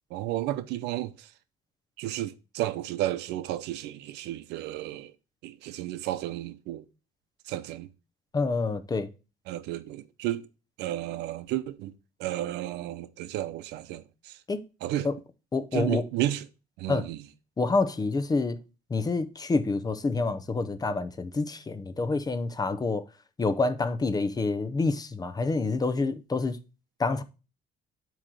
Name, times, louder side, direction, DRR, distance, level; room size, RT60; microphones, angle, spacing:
voice 1, 0.1-1.3 2.0-5.1 5.4-6.8 7.5-7.9 9.5-10.5 10.8-11.9 12.2-14.4 14.8-15.1 15.7-16.4 16.8-17.2, right 14 dB, 90° right, 0.7 m, -32 dB
voice 2, 8.3-9.1 14.5-14.6 15.0-15.1 15.5-16.1 16.9-17.1 17.6-18.6 18.9-23.1 23.4-26.6 27.0-27.2, left 3 dB, 20° left, 0.8 m, -27 dB
8.7 x 3.1 x 6.3 m
cardioid pair, 110°, 17 cm